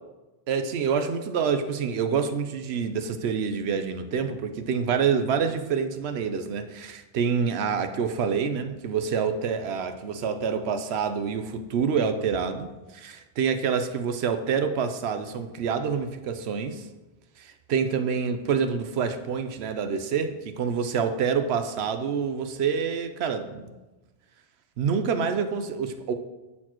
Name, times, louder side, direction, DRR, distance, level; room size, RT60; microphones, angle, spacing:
voice 1, 0.5-12.7 12.9-16.9 17.4-23.8 24.8-26.1, right 6 dB, 90° right, 8 dB, 0.9 m, -27 dB
12.0 x 4.4 x 3.0 m, 1.1 s
omnidirectional pair, 1.0 m